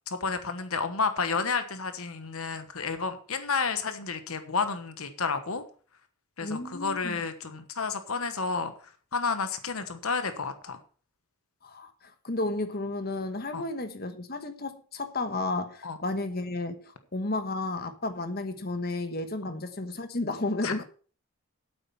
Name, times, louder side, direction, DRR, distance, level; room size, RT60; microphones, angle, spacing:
voice 1, 0.1-5.6 6.4-8.7 9.1-10.8 13.5-13.6 15.8-16.0 19.4-19.5 20.6-20.7, left 5 dB, 75° left, 1.2 m, -31 dB
voice 2, 6.4-7.2 11.6-20.8, left 2 dB, 45° left, 1.2 m, -32 dB
8.9 x 8.4 x 5.8 m
head